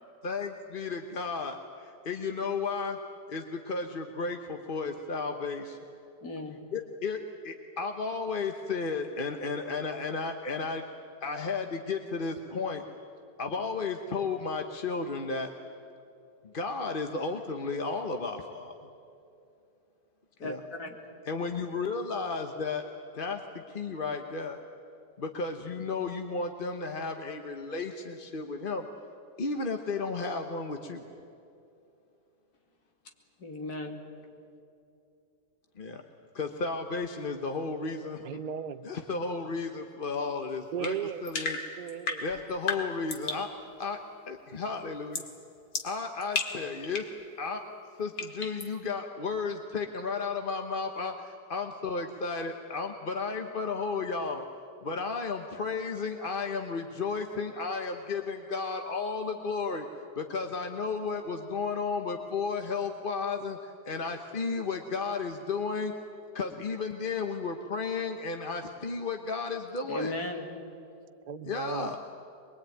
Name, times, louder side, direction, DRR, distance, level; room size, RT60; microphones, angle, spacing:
voice 1, 0.2-3.0 3.3-5.8 6.7-10.8 11.2-12.8 13.4-15.5 16.4-18.7 20.4-20.6 21.3-22.8 23.1-24.6 25.2-28.9 29.4-31.0 35.8-36.0 36.3-38.2 38.8-40.9 41.2-41.6 42.2-43.5 43.8-44.0 44.3-45.3 45.8-47.1 47.4-47.6 48.0-54.4 54.8-59.9 60.2-65.9 66.3-70.1 71.4-72.0, left 4 dB, 35° left, 5 dB, 1.1 m, -33 dB
voice 2, 6.2-6.6 20.4-21.0 33.4-34.0 69.9-70.5, left 2 dB, 60° left, 3 dB, 2.9 m, -36 dB
voice 3, 38.2-38.9 40.7-41.2 41.8-42.2 71.3-71.9, right 9 dB, 90° right, 11 dB, 0.4 m, -36 dB
sound 1, 40.8-43.5 45.1-45.4 45.7-47.2 48.2-48.7, left 4 dB, 85° left, 2.6 m, -34 dB
23.5 x 22.5 x 9.2 m, 2.7 s
omnidirectional pair, 1.8 m